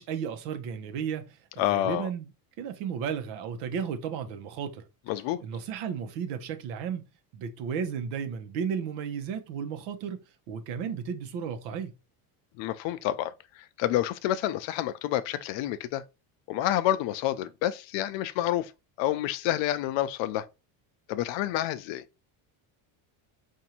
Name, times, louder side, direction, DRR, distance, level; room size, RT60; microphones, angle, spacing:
voice 1, 0.0-1.4 1.7-2.3 2.6-4.8 5.4-7.1 7.3-11.9, right 7 dB, 90° right, 1.0 m, -34 dB
voice 2, 1.6-2.1 5.1-5.4 12.6-16.0 16.5-18.7 19.0-20.5 21.1-22.0, left 13 dB, 65° left, 0.6 m, -28 dB
5.0 x 2.7 x 2.8 m
cardioid pair, 130°, 49 cm